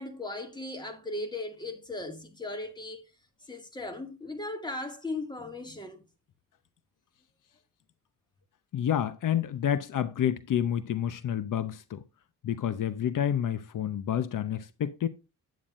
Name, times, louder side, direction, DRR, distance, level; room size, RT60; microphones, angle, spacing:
voice 1, 0.0-3.0 3.5-6.0, left 2 dB, 15° left, 2.2 m, -37 dB
voice 2, 8.7-12.0 12.4-15.1, left 9 dB, 70° left, 0.8 m, -29 dB
9.4 x 8.6 x 2.6 m
wide cardioid pair, 115°, 32 cm